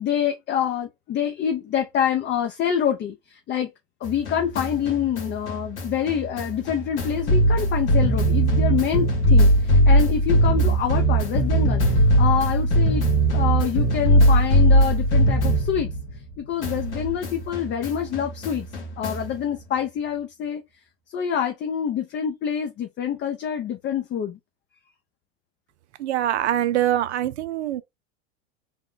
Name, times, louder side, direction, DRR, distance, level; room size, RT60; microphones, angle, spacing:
voice 1, 0.0-3.7 4.0-13.0 13.3-15.9 16.4-18.7 19.0-20.6 21.1-24.4, left 9 dB, 35° left, 0.6 m, -26 dB
sound 1, 4.0-16.3 16.6-19.4, right 1 dB, 85° left, 1.7 m, -20 dB
voice 2, 26.0-27.8, right 12 dB, 90° right, 0.5 m, -24 dB
3.5 x 2.2 x 3.8 m
hypercardioid pair, 100°, 33 cm